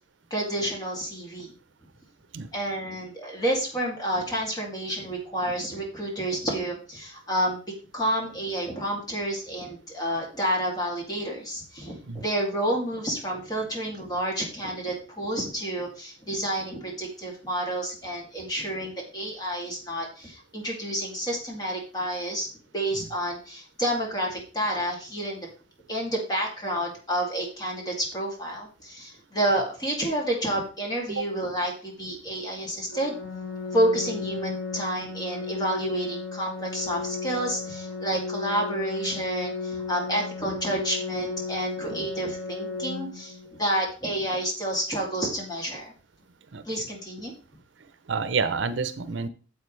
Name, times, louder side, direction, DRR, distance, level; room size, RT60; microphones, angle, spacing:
voice 1, 0.3-1.5 2.5-7.6 7.9-22.5 22.7-25.5 25.9-33.2 33.7-45.9 46.6-47.3, right 1 dB, 20° left, -1 dB, 2.6 m, -29 dB
Organ, 32.9-43.9, left 4 dB, 85° left, 1.7 m, -34 dB
voice 2, 48.1-49.3, right 5 dB, 70° right, 13 dB, 0.7 m, -28 dB
9.6 x 7.5 x 3.3 m, 0.37 s
head